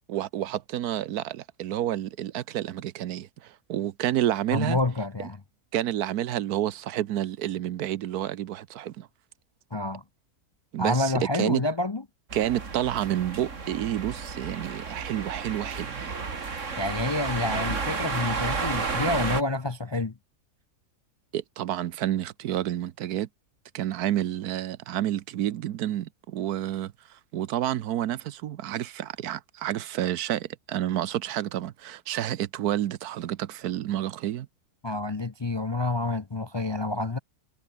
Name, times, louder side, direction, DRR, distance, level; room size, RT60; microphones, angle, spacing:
voice 1, 0.1-4.8 5.7-9.1 10.7-11.1 11.4-11.6 12.3-16.1 16.7-16.8 21.3-23.3 23.7-34.5, right 12 dB, 90° right, 1.3 m, -29 dB
voice 2, 4.5-5.4 9.7-10.0 10.8-12.0 16.8-20.1 34.8-37.2, left 2 dB, 35° left, 0.4 m, -28 dB
sound 1, 12.3-19.4, right 4 dB, 55° right, 2.5 m, -32 dB
omnidirectional pair, 1.6 m